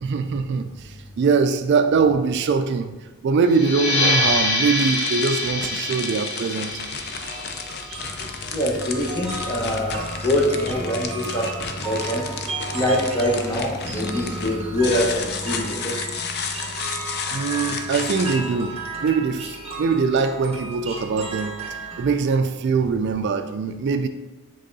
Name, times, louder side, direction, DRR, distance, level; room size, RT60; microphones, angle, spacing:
voice 1, 0.0-6.8 17.3-24.1, right 5 dB, 50° right, 0.3 m, -22 dB
sound 1, 3.5-8.7, left 1 dB, 75° left, 1.3 m, -25 dB
sound 2, 4.4-18.4, left 5 dB, 45° left, 0.5 m, -33 dB
sound 3, 7.2-22.1, right 2 dB, 25° right, 1.1 m, -35 dB
voice 2, 8.5-11.5 11.8-12.3 12.7-15.9, left 1 dB, 20° left, 1.1 m, -24 dB
7.6 x 3.6 x 4.0 m
head